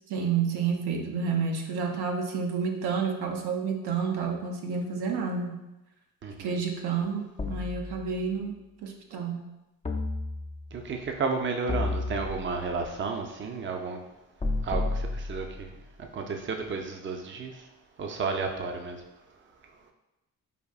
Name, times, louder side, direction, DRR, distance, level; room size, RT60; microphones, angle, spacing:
voice 1, 0.1-5.6 6.4-9.4, right 5 dB, 80° right, 1 dB, 0.6 m, -30 dB
voice 2, 6.2-6.6 10.7-14.0 14.6-15.7 16.0-17.7 18.0-19.0, right 4 dB, 30° right, 3 dB, 0.5 m, -32 dB
sound 1, 7.4-8.5 9.8-10.8 11.7-12.8 14.4-15.8, left 2 dB, 20° left, 0.4 m, -32 dB
4.9 x 2.5 x 2.4 m, 0.96 s
supercardioid pair, 55°, 38 cm